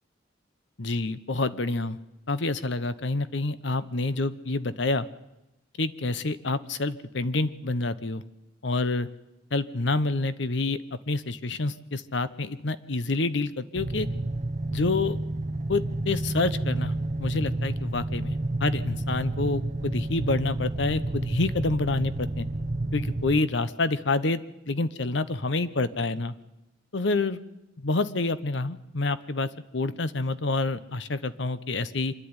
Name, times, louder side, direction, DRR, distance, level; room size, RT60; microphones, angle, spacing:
voice 1, 0.8-2.0 2.3-5.1 5.8-8.2 8.6-9.1 9.5-14.1 14.7-15.2 15.7-16.9 17.2-22.5 22.9-24.4 24.7-26.3 26.9-27.4 27.8-32.1, left 3 dB, 65° left, 14 dB, 0.9 m, -28 dB
sound 1, 13.7-23.4, right 2 dB, 35° right, 0.7 m, -30 dB
25.5 x 11.0 x 9.7 m, 0.96 s
head